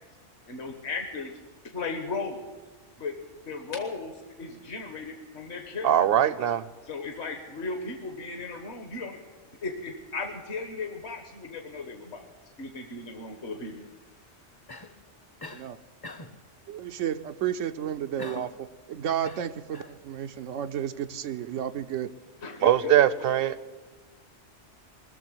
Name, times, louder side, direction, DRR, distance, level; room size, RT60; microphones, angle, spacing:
voice 1, 0.5-1.3 1.7-2.4 3.0-3.2 3.5-6.0 6.8-9.2 9.6-12.3 12.6-13.9 22.4-22.9, left 4 dB, 65° left, 5 dB, 1.6 m, -36 dB
voice 2, 5.8-6.6 22.6-23.5, right 11 dB, 60° right, 16 dB, 0.8 m, -21 dB
Cough, 14.7-15.0 15.4-15.7 16.0-16.4 18.2-18.6 19.2-20.0, left 2 dB, 25° left, 0.7 m, -42 dB
voice 3, 16.7-22.1, right 10 dB, 85° right, 9 dB, 1.0 m, -32 dB
20.5 x 6.9 x 9.6 m, 1.2 s
omnidirectional pair, 1.2 m